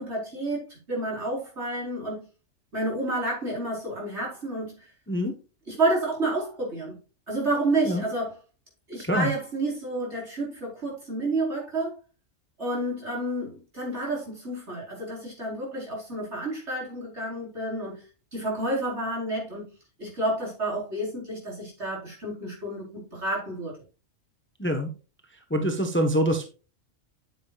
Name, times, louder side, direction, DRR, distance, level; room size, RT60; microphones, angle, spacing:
voice 1, 0.0-2.2 2.7-4.8 5.7-6.9 7.3-8.3 8.9-12.0 12.6-18.0 18.3-19.7 20.0-23.8, right 2 dB, 60° right, 5.1 m, -30 dB
voice 2, 24.6-24.9 25.5-26.5, equal, 10° left, 1.0 m, -25 dB
9.3 x 9.0 x 2.5 m
omnidirectional pair, 1.3 m